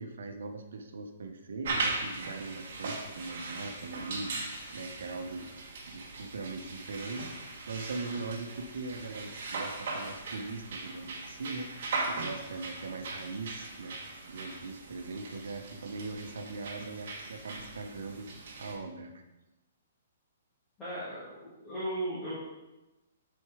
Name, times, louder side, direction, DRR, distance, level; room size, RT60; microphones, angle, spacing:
voice 1, 0.0-5.5 5.9-19.2, right 3 dB, 75° right, 6 dB, 1.0 m, -41 dB
sound 1, 1.6-18.7, right 3 dB, 50° right, 1.5 m, -39 dB
voice 2, 20.8-22.3, right 1 dB, 10° left, -12 dB, 1.8 m, -36 dB
7.8 x 4.5 x 5.0 m, 1.0 s
hypercardioid pair, 170°, 0 cm